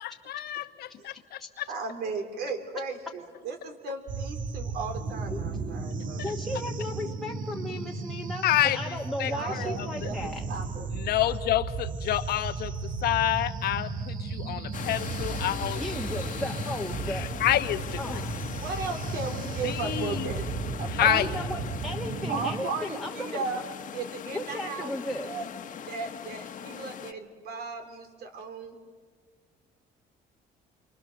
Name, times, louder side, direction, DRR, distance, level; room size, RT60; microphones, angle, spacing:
voice 1, 0.0-1.7 8.4-8.8 9.2-10.1 10.9-12.7 13.0-15.8 17.1-18.2 19.6-20.3 20.9-21.3, left 13 dB, 65° left, 1.1 m, -28 dB
voice 2, 1.7-6.2 9.3-10.2 10.5-10.9 11.2-11.3 18.6-20.5 20.8-21.3 22.3-23.6 23.9-25.0 25.2-25.5 25.8-28.8, right 4 dB, 70° right, 3.7 m, -36 dB
sound 1, 4.1-22.6, right 4 dB, 50° right, 1.6 m, -35 dB
voice 3, 5.3-5.8 6.2-10.4 15.8-17.4 18.0-18.4 21.0-23.4 24.3-25.3, left 1 dB, ahead, 1.4 m, -35 dB
sound 2, 14.7-27.1, left 8 dB, 50° left, 1.3 m, -40 dB
29.0 x 24.5 x 6.6 m
cardioid pair, 110°, 17 cm